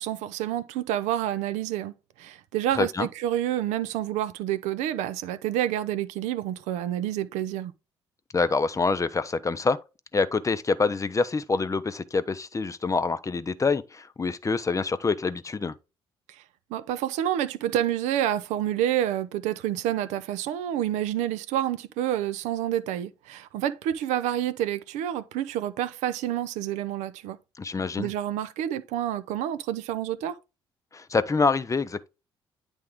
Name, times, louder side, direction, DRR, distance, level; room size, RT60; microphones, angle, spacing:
voice 1, 0.0-1.9 2.2-7.7 16.7-27.4 28.0-30.4, right 12 dB, 65° right, 0.5 m, -28 dB
voice 2, 2.8-3.1 8.3-9.8 10.1-15.7 27.6-28.1 30.9-32.1, left 4 dB, 25° left, 0.6 m, -26 dB
9.5 x 3.5 x 3.6 m
hypercardioid pair, 45°, 13 cm